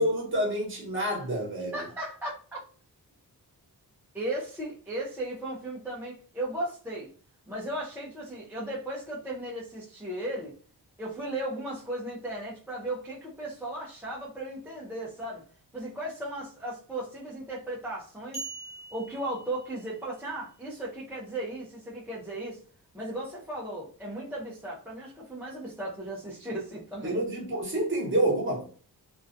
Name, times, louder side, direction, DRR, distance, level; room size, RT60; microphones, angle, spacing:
voice 1, 0.0-1.8 27.0-28.6, right 1 dB, 30° right, 0.9 m, -28 dB
voice 2, 1.7-2.6 4.1-7.1 7.5-10.5 11.0-15.4 15.7-18.5 18.9-22.6 22.9-27.2, right 1 dB, 5° right, 0.4 m, -36 dB
sound 1, 18.3-20.2, right 3 dB, 20° left, 0.8 m, -42 dB
2.4 x 2.2 x 2.5 m
wide cardioid pair, 160°, 38 cm